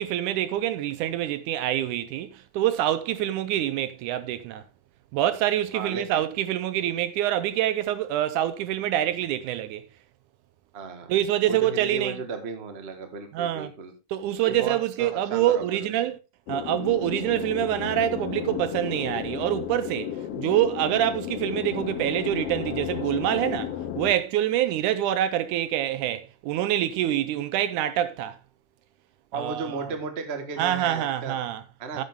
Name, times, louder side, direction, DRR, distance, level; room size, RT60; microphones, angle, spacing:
voice 1, 0.0-4.6 5.1-9.8 11.1-12.2 13.3-13.7 14.1-16.2 16.5-28.4 29.3-29.9 30.6-31.6 31.9-32.0, right 12 dB, 80° right, 2.0 m, -26 dB
voice 2, 5.7-6.0 10.7-11.1 11.5-13.9 14.4-15.9 29.3-31.4 31.8-32.0, right 4 dB, 35° right, 1.0 m, -34 dB
sound 1, 16.5-24.1, left 10 dB, 75° left, 1.4 m, -33 dB
9.3 x 9.1 x 3.6 m
omnidirectional pair, 3.7 m